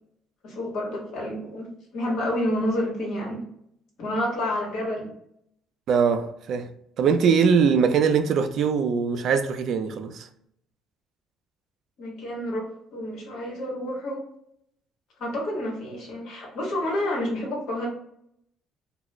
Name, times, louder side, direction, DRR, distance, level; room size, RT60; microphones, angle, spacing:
voice 1, 0.4-1.7 1.9-3.4 4.0-5.1 12.0-14.2 15.2-17.9, left 1 dB, 70° left, 1.0 m, -29 dB
voice 2, 5.9-6.7 7.0-10.3, right 6 dB, 65° right, 0.3 m, -22 dB
2.3 x 2.0 x 3.0 m
supercardioid pair, 85°, 0 cm